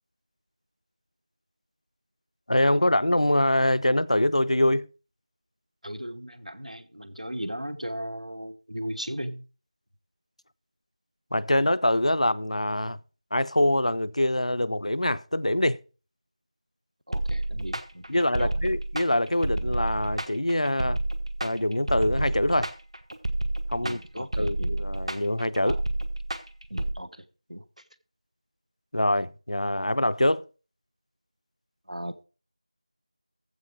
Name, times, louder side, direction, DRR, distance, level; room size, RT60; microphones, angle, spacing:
voice 1, 2.5-4.9 11.3-13.0 13.3-15.8 18.1-21.0 21.4-22.7 23.7-25.8 28.9-30.4, left 1 dB, 70° left, 0.6 m, -24 dB
voice 2, 5.8-9.4 17.1-18.0 18.4-18.5 23.8-24.7 25.6-25.8 26.7-27.1 27.5-27.6 31.9-32.2, equal, 85° right, 1.1 m, -36 dB
sound 1, 17.1-26.9, right 1 dB, 60° right, 1.4 m, -30 dB
14.5 x 5.0 x 4.9 m
figure-of-eight pair, 170°, 4 cm